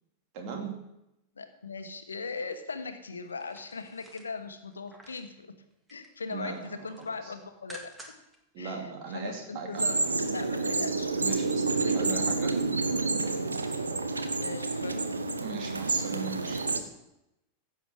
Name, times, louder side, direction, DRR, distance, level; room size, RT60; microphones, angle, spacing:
voice 1, 0.3-0.8 6.3-6.9 7.2-7.3 8.5-10.2 11.1-12.6 15.4-16.7, right 5 dB, 45° right, 2 dB, 2.4 m, -39 dB
voice 2, 1.4-5.6 5.9-7.9 8.6-8.8 9.1-11.1 11.8-12.3 14.4-15.1, left 4 dB, 75° left, 8 dB, 1.1 m, -39 dB
sound 1, 3.2-5.3 5.7-6.2 6.5-8.4 8.7-8.8, equal, 10° right, 1.8 m, -51 dB
sound 2, 9.8-16.8, right 3 dB, 80° right, 0.8 m, -29 dB
15.5 x 7.2 x 4.7 m, 0.89 s
figure-of-eight pair, 90°, 0 cm